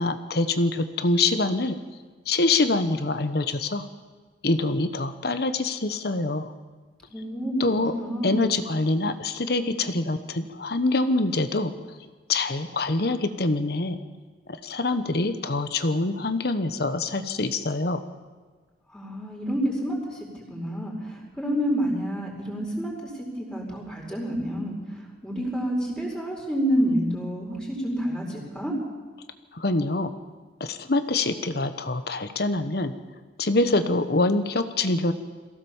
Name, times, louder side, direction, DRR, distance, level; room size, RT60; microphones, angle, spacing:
voice 1, 0.0-1.7 2.3-3.8 4.4-6.5 7.6-7.9 8.2-11.7 12.3-14.0 14.6-18.0 29.5-30.1 30.6-32.9 33.4-35.1, left 2 dB, 60° left, 10 dB, 1.1 m, -25 dB
voice 2, 7.1-8.4 18.9-20.2 20.5-22.9 23.5-24.8 25.2-28.8, equal, 5° left, -2 dB, 4.9 m, -28 dB
22.5 x 16.0 x 7.2 m, 1.4 s
head